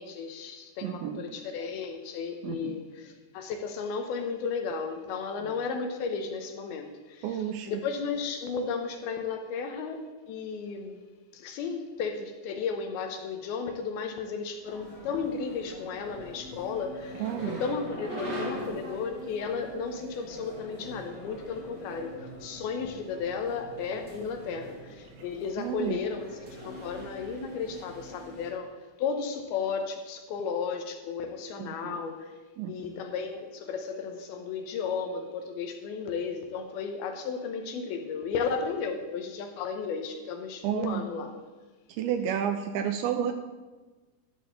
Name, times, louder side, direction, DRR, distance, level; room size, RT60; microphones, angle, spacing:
voice 1, 0.0-11.0 11.3-28.7 29.0-32.3 32.7-41.3, left 5 dB, 80° left, 5 dB, 2.5 m, -34 dB
voice 2, 0.8-1.2 2.4-2.8 7.2-7.7 17.2-17.6 25.6-26.0 31.6-32.0 32.6-32.8 40.6-41.0 42.0-43.3, right 9 dB, 80° right, 7 dB, 2.3 m, -31 dB
sound 1, 14.6-28.5, equal, 30° right, 1.9 m, -42 dB
12.0 x 4.1 x 8.0 m, 1.3 s
omnidirectional pair, 4.6 m